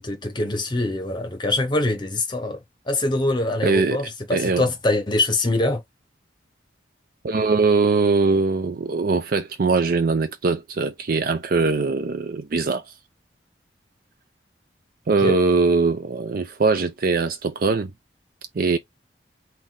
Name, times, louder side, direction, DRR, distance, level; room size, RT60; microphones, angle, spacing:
voice 1, 0.0-2.6 2.9-5.8 15.2-15.4, left 2 dB, 25° left, 0.9 m, -24 dB
voice 2, 3.6-4.0 4.3-4.6 7.2-12.8 15.1-17.9 18.5-18.8, right 4 dB, 50° right, 0.5 m, -21 dB
4.1 x 2.7 x 3.7 m
head